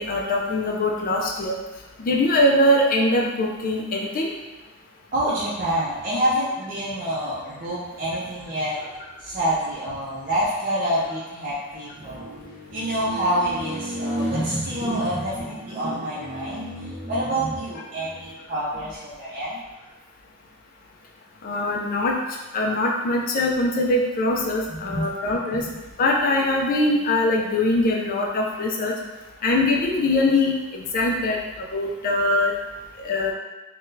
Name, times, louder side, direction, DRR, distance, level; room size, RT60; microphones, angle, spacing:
voice 1, 0.0-1.5 2.0-4.3 21.4-22.2 22.5-25.6 26.0-29.0 29.4-32.5 33.0-33.3, left 1 dB, 40° left, -1 dB, 0.4 m, -22 dB
voice 2, 5.1-8.9 9.2-19.6 24.7-25.1 25.7-25.8, right 1 dB, 40° right, -8 dB, 0.6 m, -27 dB
2.6 x 2.2 x 3.7 m, 1.1 s
head